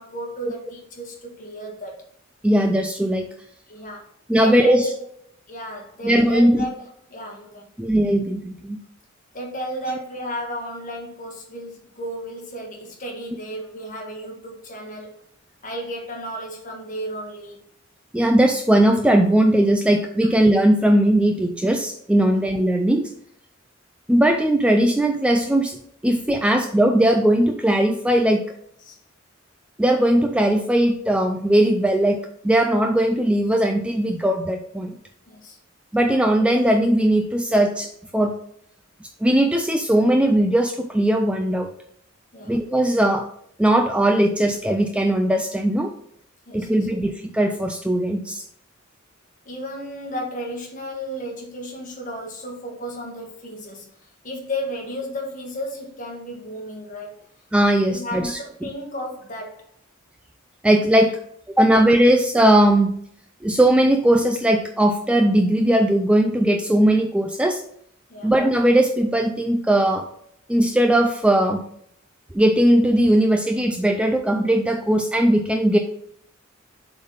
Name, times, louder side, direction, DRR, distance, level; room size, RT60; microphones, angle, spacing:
voice 1, 0.0-2.0 3.7-4.1 4.4-5.1 5.5-7.7 9.3-15.2 15.6-17.6 22.2-22.4 28.8-29.0 35.3-35.6 42.3-42.5 46.5-46.7 49.4-57.2 57.9-59.7 61.7-61.8 68.1-68.3, equal, 40° left, 1 dB, 1.5 m, -33 dB
voice 2, 2.4-3.3 4.3-4.9 6.0-6.7 7.8-8.8 18.1-23.1 24.1-25.8 26.0-28.4 29.8-35.0 35.9-38.4 39.0-41.7 42.5-43.3 43.6-45.9 46.5-48.4 57.5-58.7 60.6-61.2 61.5-63.0 63.4-67.6 68.2-70.1 70.5-71.7 72.3-75.8, right 1 dB, 5° right, 4 dB, 0.3 m, -19 dB
7.3 x 4.0 x 3.9 m, 0.67 s
head